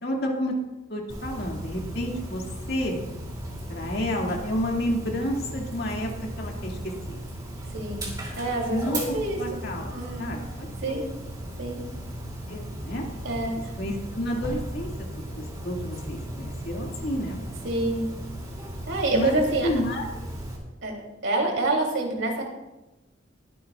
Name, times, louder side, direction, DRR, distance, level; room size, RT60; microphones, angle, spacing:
voice 1, 0.0-0.6 0.9-3.0 3.7-6.1 6.4-7.2 8.7-9.9 10.2-11.0 12.5-13.1 13.8-17.4 19.1-20.1, equal, 55° left, 0 dB, 2.2 m, -30 dB
Dog, 1.1-20.6, right 1 dB, 20° right, 2.8 m, -36 dB
voice 2, 7.7-8.1 8.4-8.8 9.1-9.6 9.9-10.3 10.8-11.0 11.6-11.8 13.2-13.7 17.6-18.1 18.9-19.7 20.8-22.4, right 2 dB, 75° right, 0 dB, 3.0 m, -27 dB
22.0 x 9.4 x 2.4 m, 1.0 s
head